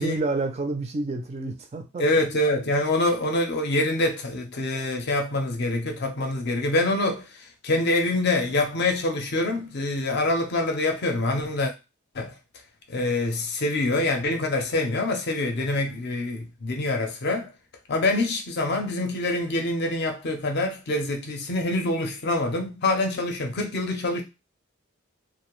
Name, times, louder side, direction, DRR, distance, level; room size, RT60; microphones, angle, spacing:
voice 1, 0.0-2.3, right 2 dB, 30° right, 0.3 m, -29 dB
voice 2, 2.0-11.7 12.1-12.3 12.9-17.5 17.9-24.2, left 2 dB, 50° left, 0.5 m, -25 dB
2.4 x 2.0 x 2.9 m
head